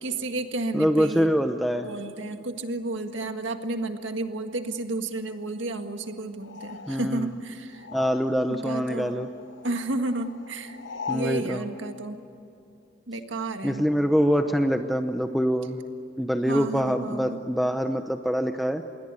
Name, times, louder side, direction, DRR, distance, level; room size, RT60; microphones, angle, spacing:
voice 1, 0.0-1.3 1.8-7.9 8.4-9.2 9.6-10.8 11.1-12.2 13.1-13.9 16.5-17.4, right 2 dB, 90° right, 6 dB, 1.8 m, -32 dB
voice 2, 0.7-1.9 6.9-7.3 7.9-9.3 11.1-11.6 13.6-15.8 16.2-18.8, equal, ahead, 6 dB, 0.8 m, -24 dB
sound 1, 6.4-8.7 8.9-11.4, left 6 dB, 85° left, 0.9 m, -41 dB
27.5 x 22.0 x 9.8 m, 2.7 s
head